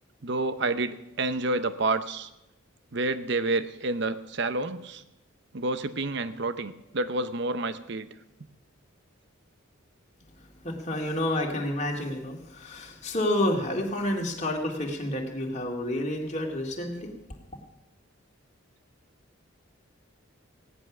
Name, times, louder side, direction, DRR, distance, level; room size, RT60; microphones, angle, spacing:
voice 1, 0.2-2.3 2.9-5.0 5.5-8.1, right 2 dB, 55° right, 12 dB, 0.8 m, -29 dB
voice 2, 10.6-17.1, left 1 dB, 35° left, 0 dB, 2.2 m, -29 dB
16.5 x 10.5 x 6.1 m, 0.93 s
head